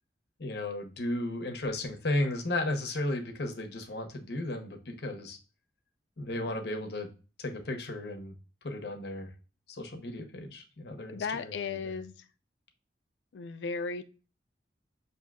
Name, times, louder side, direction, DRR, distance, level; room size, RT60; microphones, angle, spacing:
voice 1, 0.4-5.4 6.2-7.1 7.4-8.3 8.6-9.3 9.7-12.0, left 1 dB, 65° left, 5 dB, 0.7 m, -34 dB
voice 2, 11.1-12.1 13.3-14.1, left 5 dB, 85° left, 10 dB, 0.4 m, -35 dB
6.2 x 2.7 x 2.3 m, 0.34 s
head